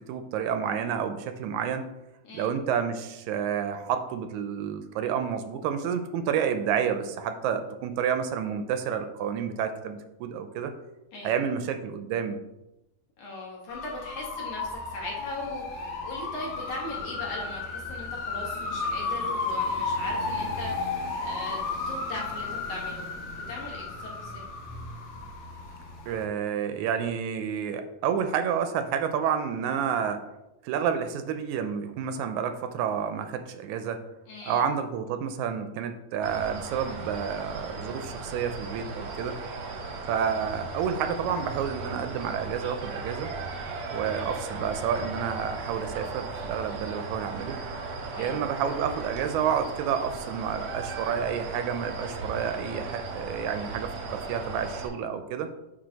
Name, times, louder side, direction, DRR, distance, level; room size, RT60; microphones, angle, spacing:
voice 1, 0.0-1.9 2.3-10.7 11.2-12.4 26.1-30.2 30.6-34.0 34.5-39.4 40.1-43.3 43.9-47.6 48.2-55.5, right 8 dB, 80° right, 8 dB, 1.9 m, -30 dB
voice 2, 13.2-21.6 21.9-24.4 34.3-34.6 40.3-40.4 48.1-48.4, left 2 dB, 60° left, -3 dB, 2.5 m, -39 dB
sound 1, 13.7-26.2, left 3 dB, 85° left, 1.0 m, -33 dB
sound 2, 36.2-54.9, right 3 dB, 65° right, 1.4 m, -36 dB
8.9 x 3.3 x 4.0 m, 0.95 s
omnidirectional pair, 3.5 m